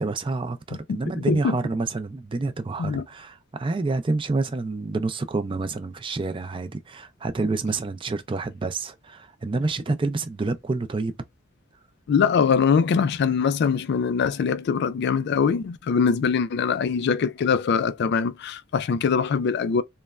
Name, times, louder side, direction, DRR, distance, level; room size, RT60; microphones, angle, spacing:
voice 1, 0.0-11.2, right 3 dB, 25° right, 0.4 m, -28 dB
voice 2, 1.2-1.6 2.8-3.0 12.1-19.8, left 6 dB, 55° left, 0.3 m, -22 dB
3.1 x 2.1 x 2.3 m
head